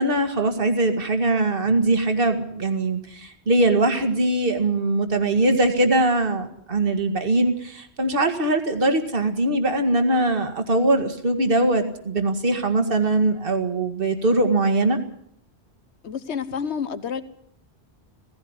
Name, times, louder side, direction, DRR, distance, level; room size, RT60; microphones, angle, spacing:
voice 1, 0.0-15.0, right 2 dB, 55° right, 7 dB, 2.2 m, -21 dB
voice 2, 16.0-17.2, left 7 dB, 85° left, 12 dB, 1.4 m, -29 dB
17.5 x 15.5 x 9.7 m, 0.68 s
omnidirectional pair, 1.1 m